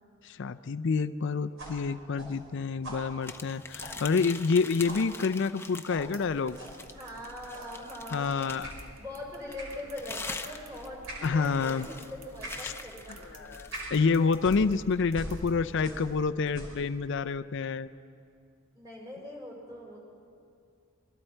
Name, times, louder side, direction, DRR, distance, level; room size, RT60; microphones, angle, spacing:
voice 1, 0.2-6.6 8.1-8.7 11.2-11.9 12.6-12.7 13.3-17.9, left 4 dB, 60° left, 12 dB, 0.5 m, -28 dB
sound 1, 1.6-4.6 4.9-5.1 5.9-6.1 6.5-6.8 7.5-7.8 8.6-8.8 9.6-9.8 10.3-10.4 11.1-11.3 11.7-11.9 12.4-12.7 13.1-13.2 13.7-14.0 14.4-16.2 16.5-16.9, right 1 dB, 65° right, 5.3 m, -43 dB
sound 2, 3.2-6.1 6.4-8.8 9.5-13.9, left 3 dB, 10° left, 0.7 m, -43 dB
sound 3, 5.9-16.3, right 1 dB, 85° right, 1.5 m, -53 dB
voice 2, 6.9-8.5 9.0-11.0 11.3-13.6 18.7-20.0, left 1 dB, 20° right, -3 dB, 5.6 m, -42 dB
28.0 x 22.0 x 4.5 m, 2.4 s
head